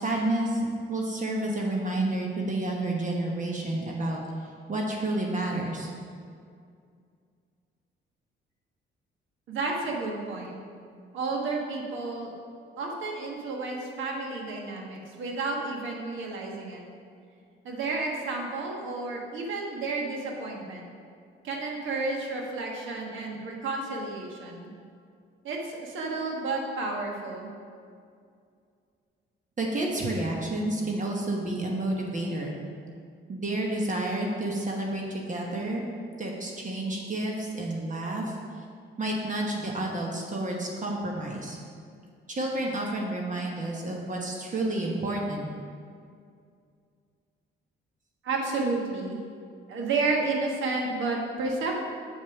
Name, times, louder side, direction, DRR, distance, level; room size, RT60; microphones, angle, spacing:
voice 1, 0.0-4.2 4.7-5.9 29.6-32.6 33.3-35.8 36.2-38.4 39.0-41.6 42.3-45.5, right 1 dB, 40° right, -1 dB, 1.1 m, -30 dB
voice 2, 9.5-10.6 11.1-12.3 12.8-16.8 17.6-20.9 21.4-24.7 25.4-27.5 48.2-49.2 49.7-51.9, right 3 dB, 80° right, 0 dB, 1.4 m, -31 dB
7.2 x 4.9 x 5.8 m, 2.3 s
cardioid pair, 90°, 20 cm